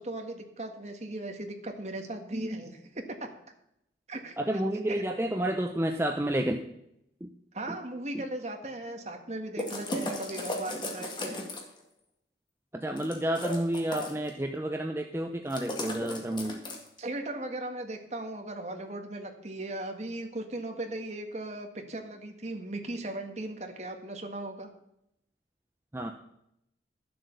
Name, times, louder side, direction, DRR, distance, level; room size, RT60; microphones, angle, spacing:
voice 1, 0.0-3.3 4.1-4.3 4.9-5.0 7.5-11.4 17.0-24.7, right 1 dB, 40° right, 4 dB, 1.7 m, -37 dB
voice 2, 2.3-2.6 4.4-6.6 7.2-7.3 7.7-7.8 8.1-8.2 12.7-16.6 25.9-26.1, right 1 dB, 15° right, 4 dB, 0.6 m, -30 dB
sound 1, 9.6-11.8 13.0-14.3 15.5-17.0, left 1 dB, 25° left, 1.9 m, -36 dB
12.0 x 7.8 x 6.7 m, 0.78 s
head